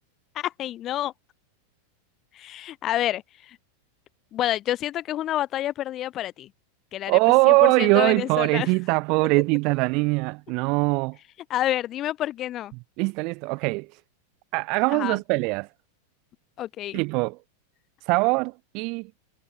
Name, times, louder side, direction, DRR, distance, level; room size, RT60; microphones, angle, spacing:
voice 1, 0.3-1.1 2.3-3.6 4.3-6.5 6.9-7.2 7.4-8.7 11.5-12.7 14.9-15.2 16.6-17.0, left 13 dB, 30° left, 1.3 m, -28 dB
voice 2, 7.1-11.2 13.0-13.9 14.5-15.7 16.9-17.4 18.1-19.1, right 28 dB, 45° right, 1.4 m, -22 dB
figure-of-eight pair, 90°, 0 cm